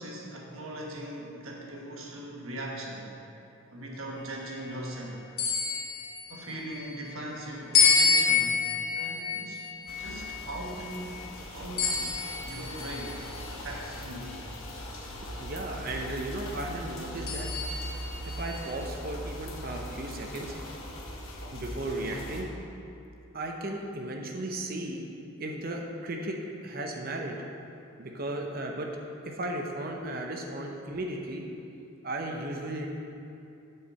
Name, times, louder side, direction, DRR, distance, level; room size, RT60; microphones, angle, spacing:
voice 1, 0.0-3.2 3.7-5.3 6.3-8.6 8.9-9.6 10.0-11.2 11.5-13.2 13.5-14.4, right 1 dB, 75° right, -2 dB, 1.4 m, -40 dB
sound 1, 5.4-6.9 7.7-11.2 11.8-13.5 14.2-14.3 17.3-18.7, left 5 dB, 45° left, 1.4 m, -28 dB
sound 2, 9.9-22.4, equal, 75° left, 1.2 m, -40 dB
voice 2, 15.4-17.8 18.2-20.5 21.5-22.5 23.3-25.0 25.4-27.4 28.0-28.9 29.2-31.4 32.0-32.9, right 1 dB, 45° right, 2 dB, 0.8 m, -35 dB
7.2 x 4.9 x 6.9 m, 2.7 s
head